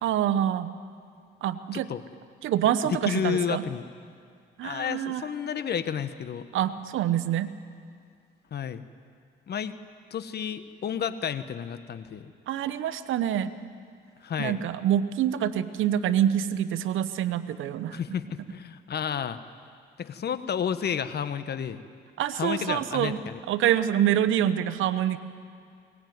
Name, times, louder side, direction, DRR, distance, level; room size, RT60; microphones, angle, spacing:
voice 1, 0.0-0.7 1.4-1.9 2.4-3.6 4.6-5.2 6.5-7.5 12.5-13.5 14.4-18.0 22.2-23.2 23.5-25.2, right 10 dB, 80° right, 13 dB, 1.1 m, -26 dB
voice 2, 2.9-3.8 4.6-6.5 8.5-8.8 9.5-9.8 10.1-12.3 14.2-14.6 17.9-19.4 20.0-21.8 22.4-23.4, left 8 dB, 55° left, 12 dB, 1.2 m, -31 dB
22.5 x 19.0 x 9.4 m, 2.2 s
cardioid pair, 90°, 20 cm